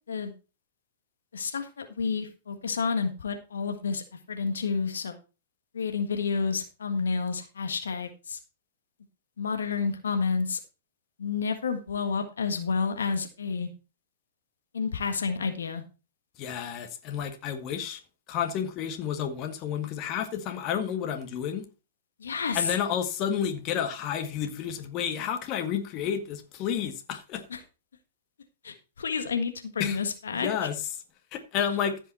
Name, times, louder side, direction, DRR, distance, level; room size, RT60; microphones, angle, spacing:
voice 1, 1.3-5.2 5.7-8.4 9.4-10.6 11.2-13.7 14.7-15.8 22.2-22.7 27.5-27.6 28.6-30.5, left 5 dB, 80° left, 1.6 m, -30 dB
voice 2, 16.4-18.0 18.3-21.6 22.5-27.4 29.8-30.0 30.3-30.7 31.3-32.0, left 8 dB, 40° left, 1.7 m, -30 dB
15.0 x 5.6 x 4.3 m
hypercardioid pair, 110°, 0 cm